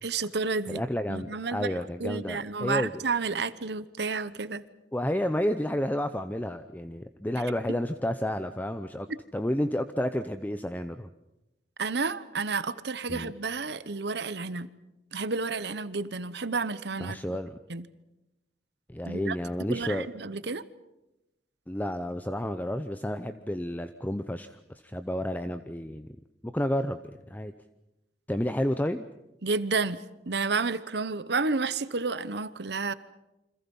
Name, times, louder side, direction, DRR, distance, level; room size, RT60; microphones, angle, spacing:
voice 1, 0.0-0.8 1.1-4.6 7.4-7.5 11.8-14.7 15.1-17.2 17.7-17.9 19.1-19.4 19.7-20.6 29.4-32.9, right 4 dB, 65° right, 15 dB, 1.0 m, -31 dB
voice 2, 0.7-3.0 4.9-9.1 9.3-11.1 13.1-13.3 17.0-17.6 18.9-20.1 21.7-24.6 24.8-26.1 26.4-27.5 28.3-29.0, left 1 dB, 10° left, 9 dB, 0.7 m, -31 dB
28.5 x 26.0 x 5.5 m, 0.96 s
head